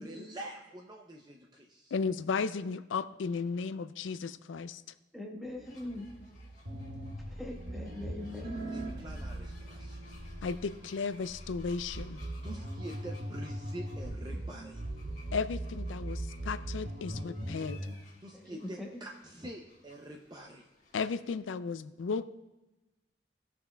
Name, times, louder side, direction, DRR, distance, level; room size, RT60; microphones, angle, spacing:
voice 1, 0.0-1.9 8.7-10.0 12.4-14.8 18.2-20.7, right 1 dB, 20° right, 0 dB, 0.5 m, -46 dB
voice 2, 1.9-4.8 10.4-12.2 15.3-17.8 20.9-22.3, left 5 dB, 85° left, 15 dB, 0.4 m, -34 dB
voice 3, 5.1-6.1 7.3-8.6 18.3-18.9, left 1 dB, ahead, 1 dB, 0.8 m, -42 dB
sound 1, 5.5-10.9, right 1 dB, 60° right, 1.0 m, -47 dB
sound 2, 5.6-21.4, left 2 dB, 40° left, 1.5 m, -60 dB
sound 3, 6.7-17.9, right 1 dB, 85° right, 1.8 m, -40 dB
17.0 x 5.9 x 2.3 m, 1.0 s
head